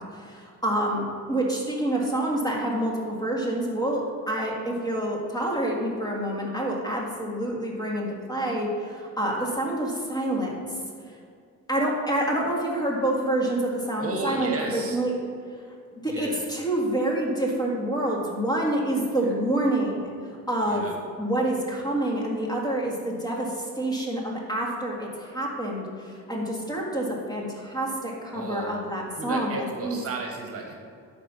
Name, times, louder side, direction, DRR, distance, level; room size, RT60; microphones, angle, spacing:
voice 1, 0.0-10.6 11.7-15.1 15.9-20.1 20.5-20.9 21.2-30.0, right 1 dB, 10° left, -2 dB, 1.7 m, -27 dB
voice 2, 14.0-15.0 16.1-16.4 19.2-19.3 20.6-20.9 26.7-26.8 28.3-28.7 29.2-30.8, right 3 dB, 45° right, 2 dB, 1.2 m, -33 dB
10.5 x 4.4 x 5.5 m, 2.3 s
cardioid pair, 120°, 32 cm